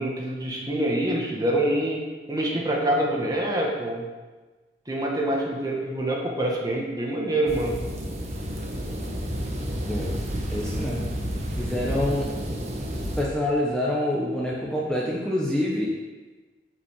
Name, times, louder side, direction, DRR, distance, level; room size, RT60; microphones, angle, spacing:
voice 1, 0.0-2.0 2.3-4.1 4.9-7.8, right 1 dB, 20° right, -2 dB, 1.9 m, -26 dB
sound 1, 7.5-13.2, equal, 40° right, 1.4 m, -30 dB
voice 2, 10.5-11.1 11.6-12.3 13.2-16.0, left 1 dB, 5° left, -5 dB, 1.1 m, -26 dB
8.5 x 5.8 x 7.4 m, 1.3 s
head